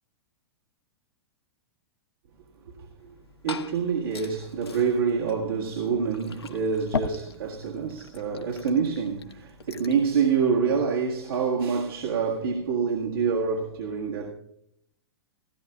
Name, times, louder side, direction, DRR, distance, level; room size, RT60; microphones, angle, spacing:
voice 1, 2.6-3.2 3.4-14.3, right 6 dB, 65° right, 1.8 m, -27 dB
Glass / Fill (with liquid), 3.0-10.1, left 5 dB, 75° left, 1.1 m, -39 dB
17.0 x 16.5 x 2.4 m
figure-of-eight pair, 105°, 13 cm